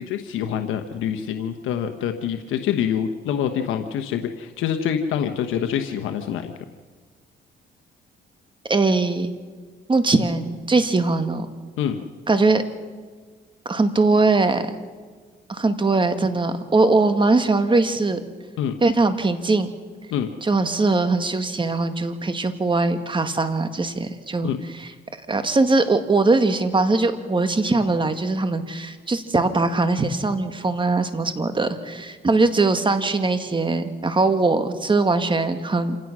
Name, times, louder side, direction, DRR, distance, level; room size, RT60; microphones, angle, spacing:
voice 1, 0.0-6.5 11.8-12.0 18.6-18.7 20.1-20.3 24.4-24.6, left 8 dB, 85° left, 7 dB, 1.1 m, -26 dB
voice 2, 8.7-9.3 9.9-11.5 12.3-12.6 13.7-14.7 15.5-18.2 18.8-19.7 20.4-24.5 24.8-24.9 25.3-36.0, right 3 dB, 25° right, 9 dB, 1.9 m, -21 dB
27.5 x 17.0 x 6.2 m, 1.5 s
cardioid pair, 90°, 20 cm